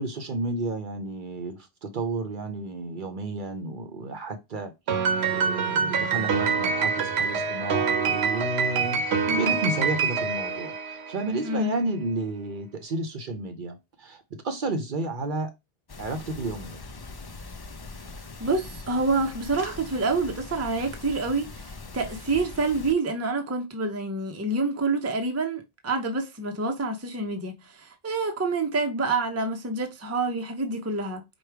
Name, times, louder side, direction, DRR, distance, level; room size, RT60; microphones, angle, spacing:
voice 1, 0.0-4.7 5.3-15.5 16.0-16.8, right 2 dB, 55° right, 0.8 m, -32 dB
Piano, 4.9-11.4, right 5 dB, 90° right, 0.9 m, -26 dB
sound 1, 15.9-22.9, left 3 dB, 40° left, 0.3 m, -41 dB
voice 2, 18.4-31.2, right 3 dB, 20° right, 0.6 m, -27 dB
4.8 x 2.3 x 4.5 m
omnidirectional pair, 1.0 m